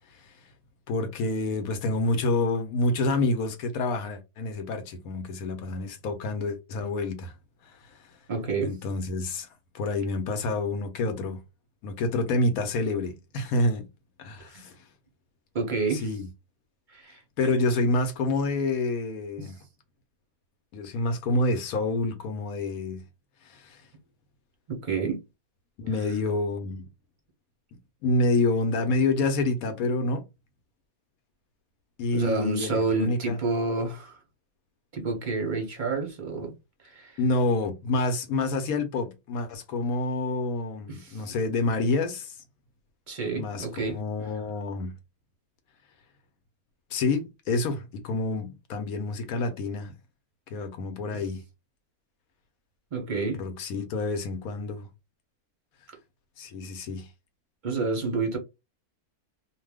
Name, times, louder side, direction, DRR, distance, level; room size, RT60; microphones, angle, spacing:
voice 1, 0.9-7.3 7.6-8.1 8.6-9.5 9.7-11.4 11.8-13.9 14.2-14.7 15.9-16.3 17.4-19.6 20.7-23.0 23.4-23.8 25.8-26.9 28.0-30.2 32.0-33.4 37.2-42.4 43.3-44.9 46.9-49.9 50.5-51.4 53.4-54.9 56.4-57.1, left 2 dB, 75° left, 1.0 m, -28 dB
voice 2, 8.3-8.7 14.5-14.7 15.5-16.0 16.9-17.2 19.4-19.5 24.7-25.2 32.1-34.2 34.9-36.5 36.8-37.2 40.9-41.2 43.1-44.0 52.9-53.4 57.6-58.4, right 3 dB, 45° right, 0.6 m, -29 dB
2.5 x 2.2 x 3.3 m
omnidirectional pair, 1.6 m